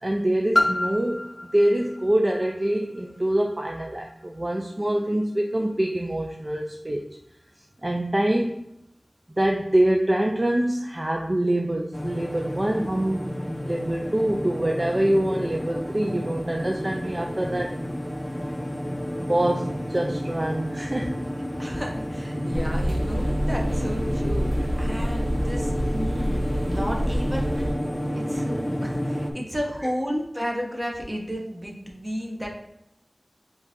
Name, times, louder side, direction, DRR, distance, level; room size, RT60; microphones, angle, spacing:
voice 1, 0.0-7.0 7.8-8.6 9.4-13.3 13.7-17.7 19.2-21.2, right 1 dB, 35° right, 2 dB, 0.4 m, -25 dB
Piano, 0.5-6.0 6.7-6.8, left 1 dB, 50° left, 0.5 m, -31 dB
sound 1, 11.9-29.3, equal, 10° left, 0.7 m, -30 dB
voice 2, 21.6-27.8 28.2-32.6, equal, 15° right, 0 dB, 1.0 m, -33 dB
sound 2, 22.5-27.7, equal, 80° right, 0.8 m, -27 dB
4.7 x 2.6 x 3.7 m, 0.83 s
wide cardioid pair, 50°, 0 cm